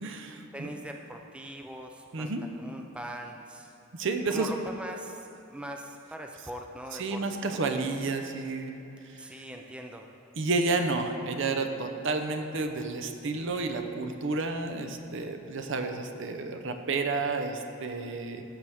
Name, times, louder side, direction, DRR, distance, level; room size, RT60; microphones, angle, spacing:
voice 1, 0.0-0.7 2.1-2.4 3.9-4.5 7.0-8.8 9.1-9.3 10.4-18.4, right 3 dB, 65° right, 6 dB, 0.7 m, -31 dB
voice 2, 0.5-2.3 2.6-3.7 4.3-7.6 9.2-10.1, right 1 dB, 5° right, 2 dB, 0.4 m, -41 dB
14.0 x 6.2 x 3.5 m, 2.9 s
head